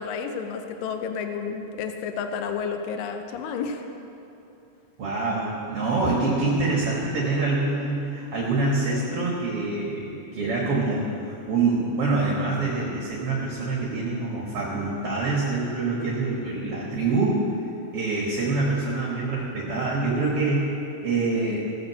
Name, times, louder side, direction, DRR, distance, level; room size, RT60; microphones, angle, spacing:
voice 1, 0.0-3.9 21.4-21.7, left 6 dB, 75° left, 5 dB, 2.1 m, -31 dB
voice 2, 5.0-11.1 11.5-17.4 17.9-20.7 21.0-21.6, right 3 dB, 50° right, -4 dB, 1.8 m, -25 dB
17.0 x 6.5 x 7.5 m, 2.8 s
omnidirectional pair, 4.4 m